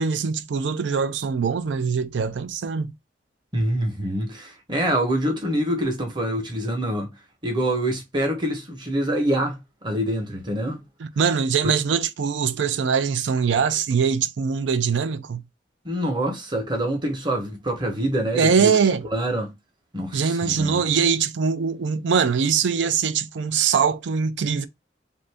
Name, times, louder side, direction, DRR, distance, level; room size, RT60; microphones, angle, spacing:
voice 1, 0.0-2.9 11.2-15.4 18.3-19.0 20.1-24.7, right 6 dB, 85° right, 0.4 m, -22 dB
voice 2, 3.5-7.1 7.4-10.8 11.6-11.7 15.8-18.7 19.1-19.5 19.9-20.9, right 1 dB, 25° right, 0.9 m, -25 dB
2.6 x 2.6 x 3.3 m
head